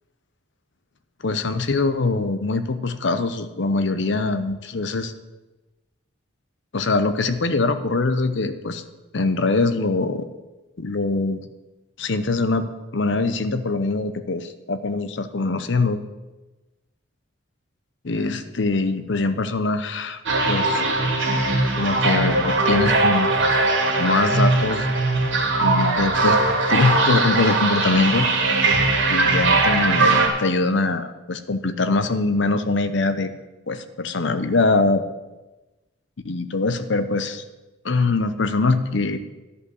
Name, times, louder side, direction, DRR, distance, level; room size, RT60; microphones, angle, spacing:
voice 1, 1.2-5.1 6.7-8.8 9.1-10.3 10.8-11.4 12.0-16.0 18.0-20.2 20.5-20.8 21.8-23.3 24.0-24.9 25.6-26.4 26.7-28.3 29.1-33.3 33.7-35.0 36.2-37.4 37.8-39.2, left 3 dB, 60° left, 11 dB, 0.7 m, -23 dB
sound 1, 20.3-30.3, right 2 dB, 70° right, 2.2 m, -20 dB
11.0 x 5.6 x 7.8 m, 1.1 s
head